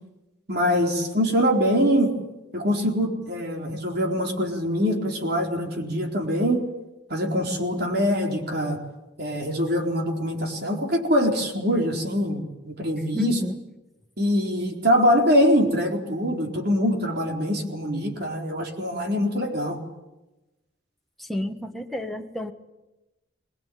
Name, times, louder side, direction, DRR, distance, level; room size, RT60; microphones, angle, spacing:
voice 1, 0.5-2.1 2.5-6.6 7.1-8.8 9.2-13.4 14.2-19.8, equal, 55° right, 2 dB, 4.2 m, -23 dB
voice 2, 13.1-13.6 21.2-22.5, equal, ahead, 3 dB, 1.6 m, -30 dB
23.0 x 20.0 x 9.4 m, 1.0 s
head